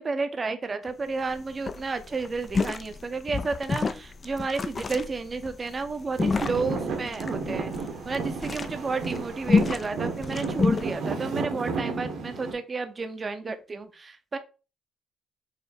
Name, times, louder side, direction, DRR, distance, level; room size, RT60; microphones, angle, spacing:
voice 1, 0.0-7.7 8.1-14.4, right 4 dB, 35° right, 9 dB, 0.6 m, -31 dB
sound 1, 0.9-1.0 1.2-1.4 1.6-10.9, left 4 dB, 35° left, 0.4 m, -29 dB
Traffic noise roadway noise / Engine, 6.2-12.5, right 4 dB, 70° right, 1.2 m, -32 dB
4.8 x 2.1 x 4.3 m, 0.33 s
cardioid pair, 90°, 0 cm